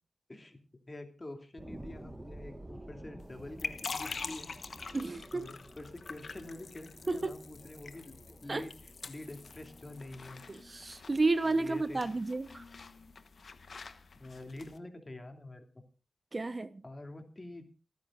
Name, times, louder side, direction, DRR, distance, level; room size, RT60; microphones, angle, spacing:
voice 1, 0.9-4.5 5.3-8.7 9.1-10.4 11.5-12.0 14.1-15.6 16.8-17.7, left 2 dB, 30° left, 2.7 m, -46 dB
sound 1, 1.6-12.6 13.1-13.2, right 1 dB, 20° right, 1.6 m, -52 dB
sound 2, 3.2-14.8, left 4 dB, 65° left, 1.1 m, -46 dB
voice 2, 4.9-5.5 7.1-7.4 8.5-8.7 10.5-12.6 16.3-16.8, right 3 dB, 40° right, 1.0 m, -32 dB
29.0 x 10.5 x 2.6 m
cardioid pair, 60°, 0 cm